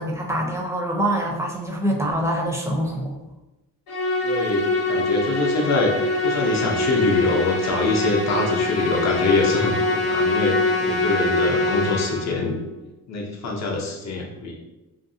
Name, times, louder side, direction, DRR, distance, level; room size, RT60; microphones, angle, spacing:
voice 1, 0.0-3.2, right 1 dB, 10° right, 0 dB, 0.4 m, -25 dB
Musical instrument, 3.9-12.4, left 2 dB, 90° left, 1.0 m, -23 dB
voice 2, 4.2-5.9 6.2-12.6 13.1-14.6, left 3 dB, 50° left, 0 dB, 0.7 m, -24 dB
2.7 x 2.5 x 2.6 m, 1.0 s
cardioid pair, 115°, 35 cm